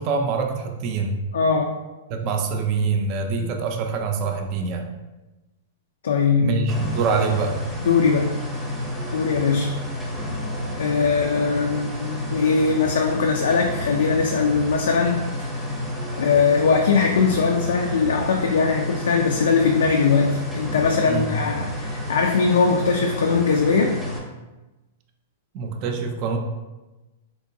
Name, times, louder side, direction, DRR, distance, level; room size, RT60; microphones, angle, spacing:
voice 1, 0.0-1.2 2.1-4.9 6.4-7.6 21.1-21.3 25.5-26.4, right 4 dB, 40° right, 3 dB, 0.4 m, -25 dB
voice 2, 1.3-1.7 3.4-3.5 6.0-6.6 7.8-8.4 9.1-9.7 10.8-15.5 16.2-23.9, left 5 dB, 90° left, 2 dB, 0.3 m, -21 dB
sound 1, 6.7-24.2, left 1 dB, 5° left, 0.6 m, -30 dB
3.6 x 2.9 x 2.6 m, 1.1 s
hypercardioid pair, 140°, 0 cm